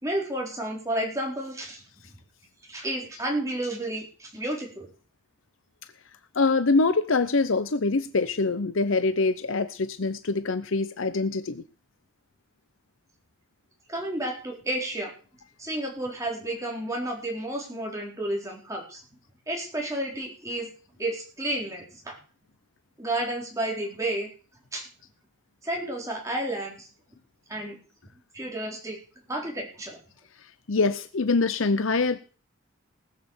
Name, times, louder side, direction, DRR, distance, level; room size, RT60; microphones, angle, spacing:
voice 1, 0.0-1.8 2.7-4.9 13.9-15.1 15.6-19.0 19.5-20.7 21.0-22.2 23.0-24.3 24.7-24.9 25.6-26.9 27.5-27.8 28.3-29.0 29.3-30.0, right 1 dB, 15° right, -1 dB, 3.9 m, -31 dB
voice 2, 6.3-11.6 30.7-32.2, left 3 dB, 70° left, 11 dB, 0.7 m, -24 dB
19.5 x 6.7 x 7.2 m, 0.39 s
head